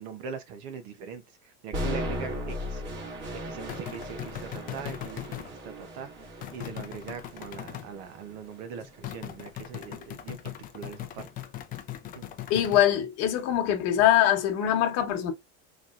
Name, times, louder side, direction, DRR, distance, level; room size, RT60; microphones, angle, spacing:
voice 1, 0.0-2.8 3.3-6.1 6.5-11.3 12.1-12.3, right 6 dB, 70° right, 0.9 m, -41 dB
sound 1, 1.7-9.7, equal, 35° right, 1.5 m, -37 dB
sound 2, 3.7-5.5 6.4-7.9 9.0-12.9, left 12 dB, 25° left, 0.4 m, -39 dB
voice 2, 12.5-15.3, left 11 dB, 50° left, 1.1 m, -23 dB
4.2 x 3.2 x 2.4 m
cardioid pair, 155°, 34 cm